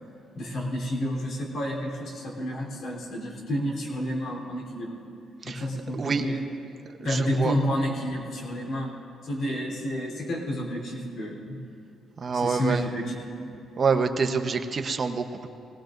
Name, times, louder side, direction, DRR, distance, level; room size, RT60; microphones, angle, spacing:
voice 1, 0.3-4.9 5.4-6.5 7.0-8.9 9.2-11.6 12.3-13.2, equal, 70° left, -2 dB, 3.5 m, -30 dB
voice 2, 12.2-12.8 13.8-15.5, right 5 dB, 40° right, 6 dB, 0.9 m, -26 dB
21.0 x 18.5 x 2.6 m, 2.6 s
cardioid pair, 90°, 0 cm